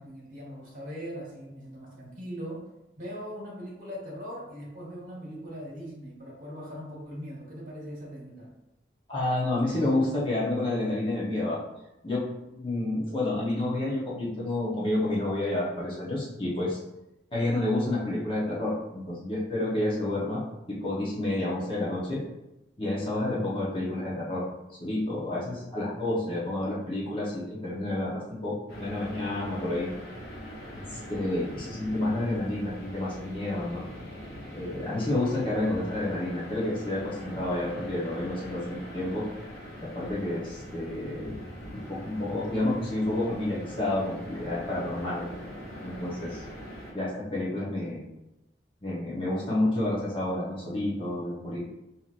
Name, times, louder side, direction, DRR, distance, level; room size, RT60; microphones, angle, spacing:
voice 1, 0.0-2.6 3.0-8.5, equal, 45° right, -4 dB, 1.4 m, -40 dB
voice 2, 9.1-11.6 12.0-12.2 12.5-16.8 17.3-20.4 20.7-22.2 22.8-24.4 24.8-29.9 30.7-33.9 34.5-39.3 39.8-41.4 41.7-45.3 45.8-46.4 46.9-48.0 48.8-51.6, left 1 dB, 30° left, -7 dB, 1.0 m, -29 dB
sound 1, 28.7-46.9, equal, 60° left, 1.2 m, -42 dB
5.7 x 2.9 x 2.5 m, 0.94 s
head